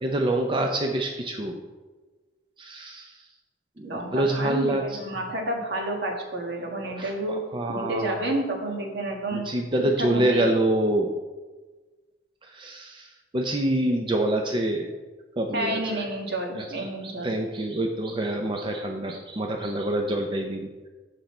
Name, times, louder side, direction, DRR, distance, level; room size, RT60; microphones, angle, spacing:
voice 1, 0.0-1.6 2.6-3.1 3.8-4.8 7.0-8.2 9.3-11.1 12.4-13.1 13.3-14.9 15.4-16.0 16.5-20.9, right 1 dB, 30° right, 2 dB, 0.6 m, -26 dB
voice 2, 3.8-7.4 7.7-9.4 10.0-10.5 15.5-17.3, right 1 dB, 65° right, 1 dB, 1.6 m, -30 dB
8.1 x 6.6 x 4.3 m, 1.3 s
head